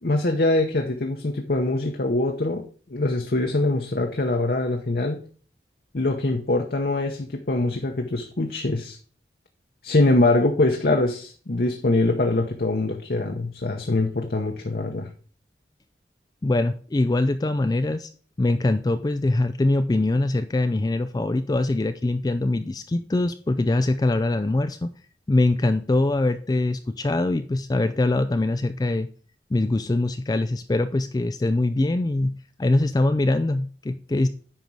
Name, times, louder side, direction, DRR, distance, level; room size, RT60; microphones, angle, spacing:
voice 1, 0.0-2.6 2.9-5.2 5.9-9.0 9.8-15.1, left 2 dB, 55° left, 0.9 m, -23 dB
voice 2, 16.4-18.1 18.4-24.9 25.3-29.1 29.5-32.3 32.6-34.3, left 2 dB, 20° left, 0.3 m, -23 dB
9.2 x 5.4 x 4.7 m
head